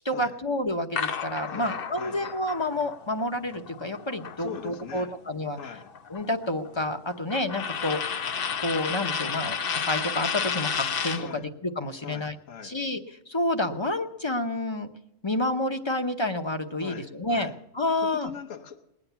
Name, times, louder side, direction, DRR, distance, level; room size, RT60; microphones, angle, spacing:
voice 1, 0.0-5.6 6.1-8.2 8.6-12.3 12.6-14.9 15.2-18.3, left 1 dB, 25° left, 0.8 m, -29 dB
sound 1, 0.9-5.0 5.3-11.3, left 6 dB, 55° left, 0.8 m, -32 dB
voice 2, 1.4-2.2 4.4-5.1 5.6-5.9 11.2-11.5 12.0-12.7 16.8-17.5 18.0-18.9, left 8 dB, 85° left, 1.5 m, -41 dB
20.0 x 9.7 x 6.9 m
omnidirectional pair, 1.3 m